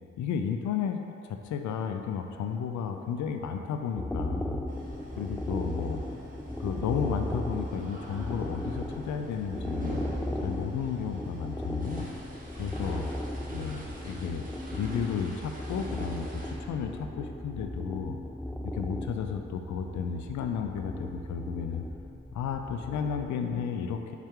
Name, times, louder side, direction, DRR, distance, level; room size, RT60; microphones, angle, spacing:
voice 1, 0.2-4.6 5.1-6.0 6.6-10.0 10.4-12.1 12.6-13.1 13.5-18.2 18.6-21.8 22.3-24.1, left 7 dB, 80° left, 5 dB, 0.5 m, -33 dB
sound 1, 4.0-23.3, left 1 dB, 5° left, 0.4 m, -36 dB
sound 2, 4.7-16.5, right 1 dB, 30° right, 1.5 m, -45 dB
5.8 x 5.8 x 3.7 m, 2.7 s
supercardioid pair, 60°, 29 cm